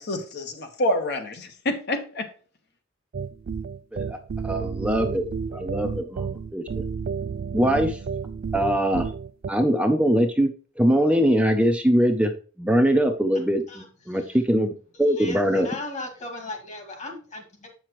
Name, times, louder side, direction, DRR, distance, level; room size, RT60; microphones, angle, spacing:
voice 1, 0.0-2.3, left 1 dB, 55° left, 5 dB, 1.3 m, -27 dB
sound 1, 3.1-9.5, right 6 dB, 50° right, 0.3 m, -31 dB
voice 2, 4.4-5.2 5.5-6.6 7.5-8.0 8.5-9.1 9.5-10.5 10.8-12.3 12.6-14.7 15.0-15.7, equal, 5° right, 5 dB, 0.6 m, -22 dB
voice 3, 14.9-17.7, left 2 dB, 35° left, 4 dB, 2.0 m, -37 dB
7.9 x 5.8 x 3.1 m, 0.40 s
head